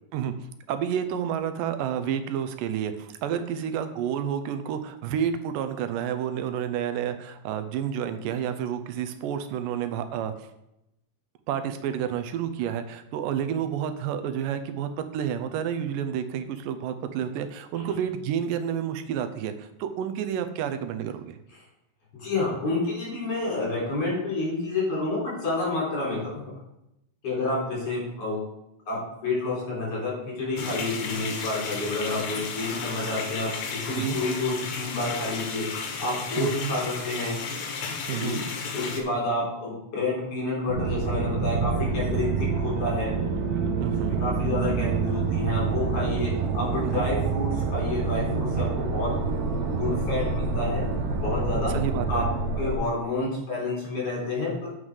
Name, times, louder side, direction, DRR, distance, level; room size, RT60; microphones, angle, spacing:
voice 1, 0.7-10.5 11.5-21.4 34.0-34.2 36.4-36.7 38.1-38.5 43.8-44.2 46.8-47.1 51.7-52.3, right 9 dB, 85° right, 9 dB, 2.3 m, -30 dB
voice 2, 22.1-26.5 27.2-28.4 28.9-33.5 33.8-37.4 38.2-38.4 38.7-43.1 44.2-49.1 49.8-50.9 51.2-51.7 52.1-52.2 52.6-54.7, left 2 dB, 45° left, -5 dB, 4.6 m, -29 dB
sound 1, 30.6-39.0, left 5 dB, 65° left, 2.2 m, -34 dB
sound 2, 40.7-52.7, right 4 dB, 65° right, 2.1 m, -27 dB
7.9 x 5.7 x 4.8 m, 0.85 s
omnidirectional pair, 3.8 m